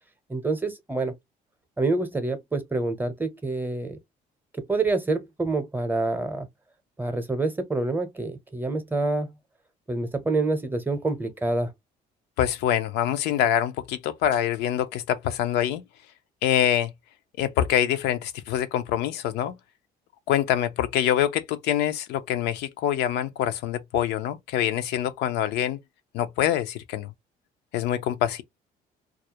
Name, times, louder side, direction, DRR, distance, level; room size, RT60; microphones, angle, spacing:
voice 1, 0.3-1.1 1.8-4.0 4.7-6.5 7.0-9.3 9.9-11.7, right 3 dB, 10° right, 0.6 m, -27 dB
voice 2, 12.4-15.8 16.4-16.9 17.4-19.5 20.3-25.8 26.1-27.1 27.7-28.4, left 11 dB, 85° left, 0.4 m, -25 dB
2.3 x 2.0 x 2.8 m
cardioid pair, 110°, 17 cm